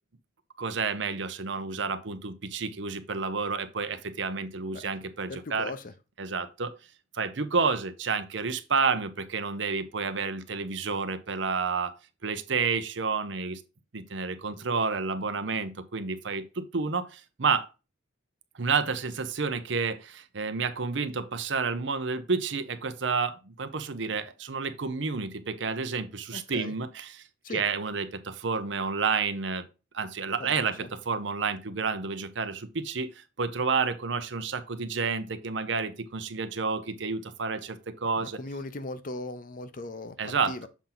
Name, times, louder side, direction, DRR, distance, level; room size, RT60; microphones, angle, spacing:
voice 1, 0.6-5.7 6.2-6.7 7.1-12.0 12.2-13.6 13.9-17.7 18.6-27.2 27.5-29.6 29.9-38.4 40.2-40.5, right 5 dB, 65° right, 0.7 m, -30 dB
voice 2, 5.3-5.9 26.3-26.8 27.4-27.6 30.4-30.9 38.1-40.2 40.5-40.7, left 2 dB, 45° left, 0.7 m, -38 dB
7.1 x 4.4 x 3.9 m
head